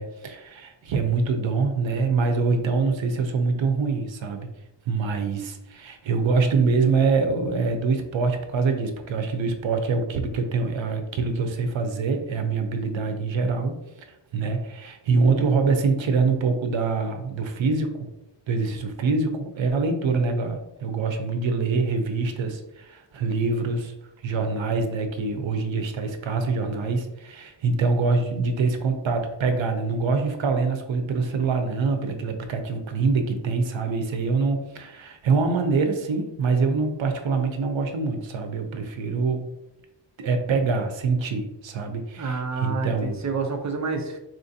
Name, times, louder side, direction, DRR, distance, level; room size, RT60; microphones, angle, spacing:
voice 1, 0.0-4.5 4.9-13.8 14.3-18.1 18.5-23.9 24.2-39.5 40.2-43.2, right 4 dB, 90° right, 6 dB, 0.6 m, -25 dB
voice 2, 42.2-44.2, right 4 dB, 40° right, 4 dB, 0.5 m, -28 dB
4.2 x 2.5 x 2.6 m, 0.92 s
wide cardioid pair, 140°, 45 cm